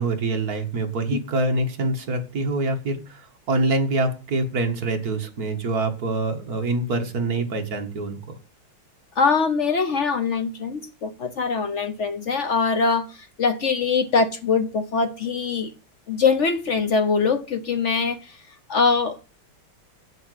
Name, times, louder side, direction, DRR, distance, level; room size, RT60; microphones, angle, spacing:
voice 1, 0.0-8.2, right 2 dB, 45° right, 1.9 m, -25 dB
voice 2, 9.2-15.7 16.1-18.4 18.7-19.3, left 5 dB, 65° left, 0.7 m, -23 dB
7.9 x 6.6 x 7.8 m
omnidirectional pair, 2.4 m